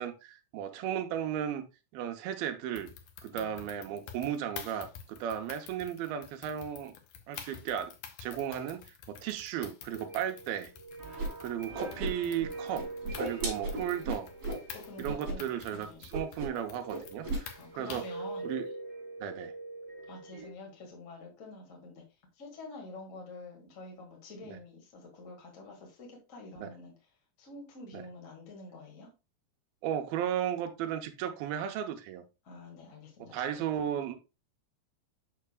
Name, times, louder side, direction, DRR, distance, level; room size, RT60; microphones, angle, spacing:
voice 1, 0.0-1.6 1.9-2.9 3.2-6.9 7.3-7.9 8.2-10.7 11.4-12.9 13.2-14.3 15.0-18.0 18.4-18.7 19.2-19.5 24.5-24.6 26.6-26.7 27.9-28.0 29.8-32.2 33.3-34.2, right 9 dB, 75° right, 2.5 m, -35 dB
sound 1, 2.8-18.2, left 8 dB, 75° left, 2.1 m, -49 dB
voice 2, 3.3-4.0 13.5-14.1 14.7-16.0 17.5-18.5 20.1-22.0 22.3-26.9 27.4-29.1 32.4-34.0, left 2 dB, 45° left, 1.0 m, -48 dB
sound 2, 9.9-15.7 16.2-20.5, right 2 dB, 10° right, 1.2 m, -44 dB
Whoosh swoosh swish, 11.2-11.3 11.6-12.5 12.7-14.6 15.0-15.3 15.6-15.8 16.1-16.6 16.9-17.4, right 2 dB, 40° right, 3.3 m, -35 dB
6.6 x 6.5 x 2.3 m
omnidirectional pair, 4.6 m